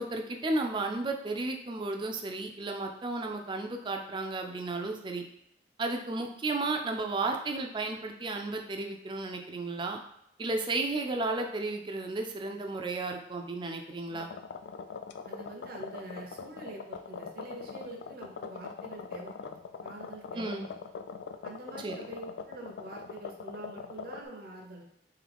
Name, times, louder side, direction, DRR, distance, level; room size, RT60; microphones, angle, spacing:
voice 1, 0.0-5.3 5.8-10.0 10.4-14.3 20.3-20.7 21.8-22.0, right 2 dB, 25° right, 3 dB, 0.4 m, -33 dB
sound 1, 14.1-24.2, left 5 dB, 80° left, 0.3 m, -42 dB
voice 2, 15.2-20.6 21.4-24.8, right 2 dB, 55° right, 0 dB, 0.8 m, -45 dB
3.7 x 2.8 x 3.4 m, 0.78 s
head